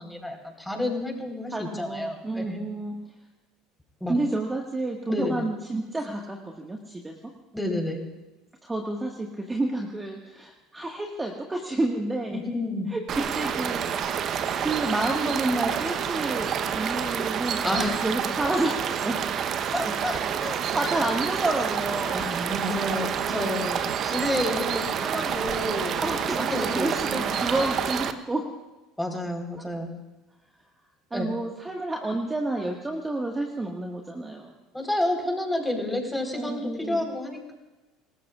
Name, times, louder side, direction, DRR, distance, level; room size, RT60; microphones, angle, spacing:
voice 1, 0.0-2.6 4.0-4.2 5.1-5.4 7.5-8.0 12.3-12.9 17.6-18.0 19.7-20.6 20.8-21.1 22.1-26.2 26.5-27.6 29.0-29.9 31.1-31.3 34.7-37.5, left 1 dB, 5° left, 2 dB, 4.3 m, -30 dB
voice 2, 1.5-3.0 4.1-7.1 8.6-12.4 12.9-13.9 14.6-19.2 20.7-22.3 26.0-28.5 31.1-34.5 36.3-37.1, right 2 dB, 15° right, 1 dB, 1.8 m, -30 dB
sound 1, 13.1-28.1, right 8 dB, 45° right, 1.0 m, -28 dB
27.5 x 19.5 x 2.5 m, 1.1 s
figure-of-eight pair, 65°, 0 cm